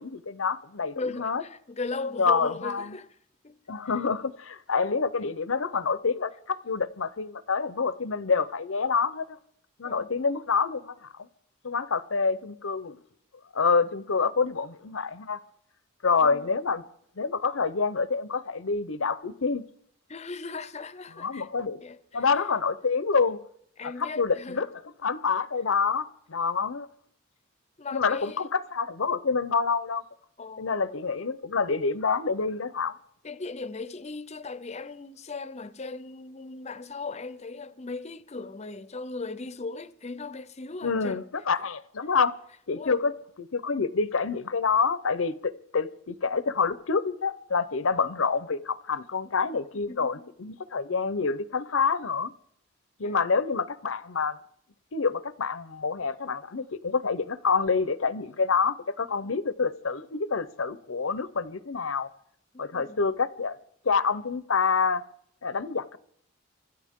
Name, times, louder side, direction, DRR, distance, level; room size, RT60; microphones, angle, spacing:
voice 1, 0.0-1.4 2.2-3.0 3.7-9.4 9.8-11.1 11.6-13.0 13.5-15.4 16.0-16.8 17.2-19.6 21.2-21.8 22.1-23.4 23.8-24.7 25.0-26.9 27.9-30.0 30.6-33.0 40.8-42.3 42.7-52.3 53.0-54.4 54.9-62.1 62.6-63.6 63.8-65.0 65.4-66.0, left 5 dB, 80° left, 0.8 m, -27 dB
voice 2, 1.0-3.1 3.4-3.6 9.8-10.1 16.2-16.5 20.1-21.5 21.8-22.2 23.8-24.6 27.8-28.5 30.4-30.7 33.2-41.2 42.7-43.1 49.5-50.3 53.0-53.2 62.5-63.0, left 3 dB, 35° left, 0.7 m, -38 dB
25.5 x 13.0 x 3.7 m
head